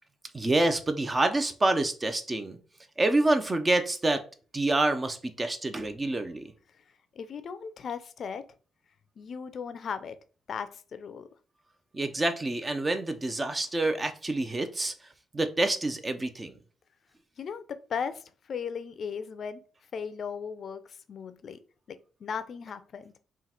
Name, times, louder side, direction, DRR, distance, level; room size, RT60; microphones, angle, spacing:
voice 1, 0.3-2.6 3.0-4.2 4.5-6.5 11.9-14.9 15.3-16.6, right 2 dB, 25° right, 8 dB, 0.7 m, -27 dB
voice 2, 7.1-8.4 9.2-10.2 10.5-11.3 17.4-19.6 19.9-21.6 22.2-23.1, left 6 dB, 60° left, 12 dB, 0.5 m, -37 dB
3.8 x 2.5 x 4.3 m, 0.38 s
cardioid pair, 75°, 0 cm